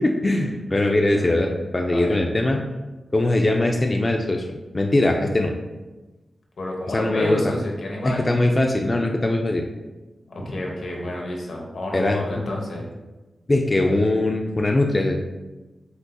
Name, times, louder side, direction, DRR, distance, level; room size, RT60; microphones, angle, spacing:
voice 1, 0.0-2.7 3.1-4.5 4.7-5.5 6.9-7.5 8.0-9.6 11.9-12.5 13.5-15.2, left 2 dB, 30° left, 2 dB, 0.4 m, -21 dB
voice 2, 1.1-1.5 1.9-2.3 6.6-8.3 10.3-12.9, left 1 dB, 80° left, -1 dB, 1.0 m, -30 dB
7.9 x 2.7 x 2.3 m, 1.1 s
wide cardioid pair, 80°, 0 cm